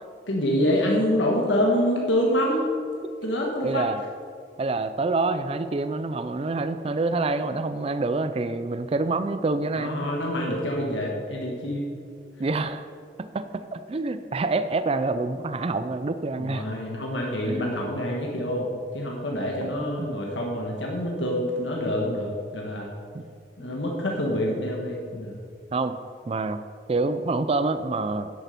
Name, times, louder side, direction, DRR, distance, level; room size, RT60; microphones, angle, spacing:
voice 1, 0.3-2.7 3.2-3.9 9.7-11.8 16.4-22.9 23.6-25.3, equal, 90° left, -1 dB, 1.5 m, -26 dB
voice 2, 3.6-4.0 4.6-10.1 12.4-12.9 13.2-16.7 17.4-17.7 19.6-19.7 20.0-20.1 23.1-23.2 23.6-23.7 25.7-26.0 26.3-26.6 26.9-28.3, right 3 dB, 35° right, 11 dB, 0.4 m, -27 dB
10.0 x 8.5 x 5.3 m, 2.2 s
head